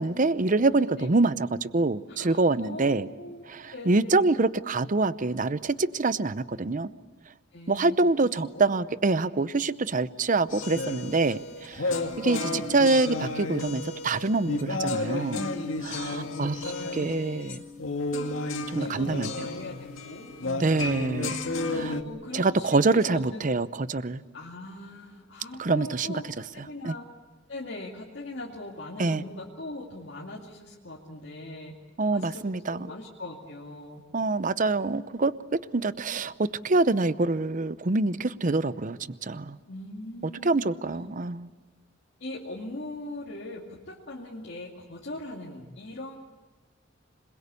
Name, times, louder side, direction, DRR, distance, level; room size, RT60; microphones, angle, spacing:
voice 1, 0.0-3.1 3.5-6.9 7.7-15.5 15.8-16.6 16.9-17.6 18.7-19.3 20.6-21.4 21.7-21.9 22.3-24.2 25.6-26.2 26.8-26.9 29.0-29.2 32.0-32.9 34.1-35.3 35.7-39.6 40.4-41.5, right 3 dB, 40° right, 15 dB, 0.7 m, -25 dB
voice 2, 2.1-3.4 3.7-4.3 7.5-8.0 8.2-8.6 15.8-17.4 18.8-21.0 21.7-23.5 24.3-27.1 27.5-31.7 32.1-34.0 39.7-41.1 42.2-46.1, left 1 dB, 65° left, -3 dB, 2.4 m, -41 dB
sound 1, 10.5-22.0, left 2 dB, 85° left, 2.2 m, -32 dB
sound 2, 14.8-22.6, left 5 dB, 65° right, 6.9 m, -46 dB
27.0 x 21.5 x 8.4 m, 1.3 s
head